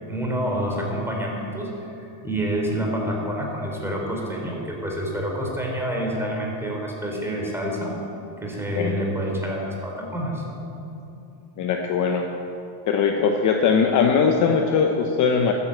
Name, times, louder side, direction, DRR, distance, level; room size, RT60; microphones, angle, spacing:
voice 1, 0.0-8.0 8.4-10.4, equal, 5° right, -1 dB, 3.2 m, -28 dB
voice 2, 11.6-12.3 12.9-15.5, left 6 dB, 35° left, 3 dB, 1.0 m, -20 dB
13.0 x 9.9 x 7.6 m, 2.9 s
supercardioid pair, 135°, 49 cm